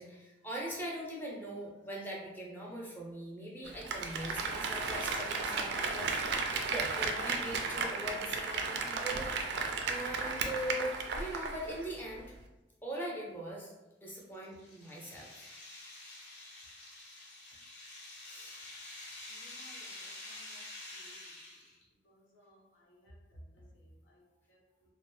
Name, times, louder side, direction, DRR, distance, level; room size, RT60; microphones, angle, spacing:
voice 1, 0.0-9.3 9.8-12.4 12.8-13.7 14.0-15.4 18.2-18.7, right 1 dB, 10° left, -4 dB, 0.6 m, -41 dB
Applause, 3.7-11.9 12.2-12.3, right 4 dB, 60° right, 0.3 m, -34 dB
sound 1, 14.1-21.8, left 2 dB, 60° left, 0.8 m, -48 dB
voice 2, 19.4-20.6 20.9-21.1 22.3-22.6 22.9-23.1 24.1-24.2, left 1 dB, 90° left, -3 dB, 0.8 m, -61 dB
2.4 x 2.1 x 3.1 m, 1.0 s
head